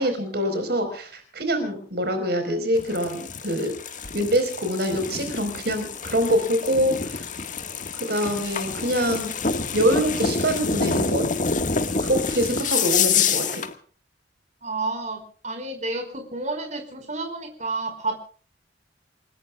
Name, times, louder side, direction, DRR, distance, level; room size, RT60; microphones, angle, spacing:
voice 1, 0.0-3.7 4.1-7.3 8.1-9.3 9.7-11.3 12.0-13.6, equal, 60° right, 7 dB, 4.6 m, -25 dB
sound 1, 2.8-13.7, left 5 dB, 45° left, 1.7 m, -27 dB
voice 2, 14.6-16.1 16.3-18.2, right 3 dB, 40° right, 5 dB, 5.0 m, -30 dB
29.0 x 19.5 x 2.4 m, 0.43 s
head